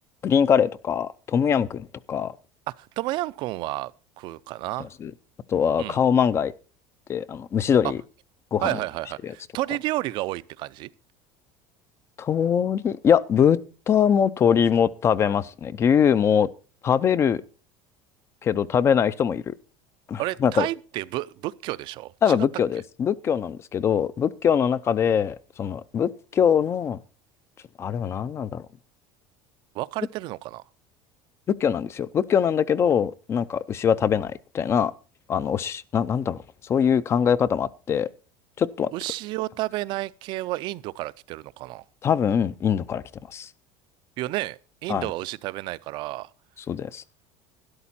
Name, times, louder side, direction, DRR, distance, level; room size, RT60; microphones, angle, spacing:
voice 1, 0.2-2.3 5.0-5.1 5.5-6.5 7.1-8.0 8.5-8.7 9.2-9.3 12.2-13.6 13.9-16.5 16.8-17.4 18.4-19.5 20.1-20.7 22.2-27.0 27.8-28.6 31.6-34.9 35.3-36.4 36.7-38.1 38.6-38.9 42.0-43.0 43.3-43.5 44.9-45.1 46.7-47.0, left 8 dB, 25° left, 0.5 m, -22 dB
voice 2, 2.7-4.9 5.8-6.0 8.6-10.9 20.2-22.4 29.7-30.6 38.9-41.8 44.2-46.3, right 17 dB, 50° right, 0.5 m, -31 dB
12.5 x 11.0 x 4.2 m
cardioid pair, 155°, 10 cm